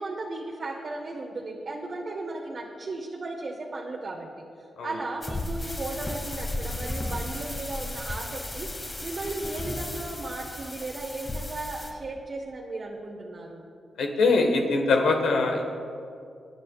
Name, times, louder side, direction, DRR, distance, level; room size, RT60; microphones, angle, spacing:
voice 1, 0.0-4.4 4.8-13.7, right 2 dB, 50° right, -1 dB, 1.3 m, -36 dB
sound 1, 5.2-11.9, left 1 dB, 30° left, 1.7 m, -34 dB
voice 2, 14.0-15.6, left 3 dB, 90° left, 2 dB, 1.3 m, -22 dB
25.0 x 9.9 x 2.4 m, 2.4 s
cardioid pair, 75°, 0 cm